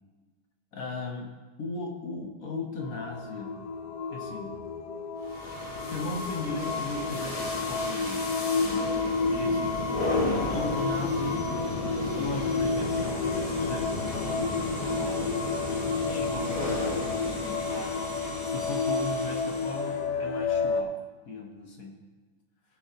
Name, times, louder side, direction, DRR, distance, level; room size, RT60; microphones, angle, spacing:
voice 1, 0.7-1.3 1.6-3.7 4.1-4.5 5.9-8.9 9.3-9.9 10.2-11.5 12.1-15.4 16.0-17.9 18.4-20.9 21.3-21.9, left 3 dB, 55° left, 1 dB, 1.5 m, -38 dB
sound 1, 2.8-20.8, left 4 dB, 75° left, 1.2 m, -31 dB
sound 2, 5.2-20.0, left 1 dB, 25° left, 0.9 m, -33 dB
16.5 x 6.9 x 2.9 m, 1.3 s
omnidirectional pair, 1.9 m